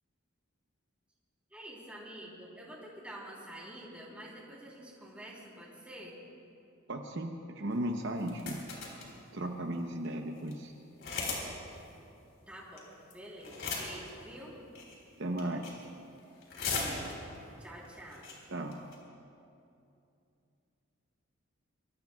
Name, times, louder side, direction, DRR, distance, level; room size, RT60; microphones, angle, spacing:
voice 1, 1.5-6.1 12.5-12.9 13.1-14.5 17.6-18.3, right 1 dB, 5° right, -5 dB, 3.4 m, -47 dB
voice 2, 6.9-8.6 9.3-10.7 15.2-15.8 18.5-18.8, right 1 dB, 60° right, 3 dB, 0.8 m, -36 dB
sound 1, 8.2-9.1 9.7-9.8 10.0-10.1 10.4-10.5 11.0-11.5 11.7-11.8 12.8-13.1 13.4-14.1 14.7-15.0 15.4-15.8 16.2-17.4 17.8-17.9 18.1-18.3 18.7-18.9, left 4 dB, 65° left, 4.0 m, -37 dB
24.5 x 23.5 x 2.3 m, 2.7 s
head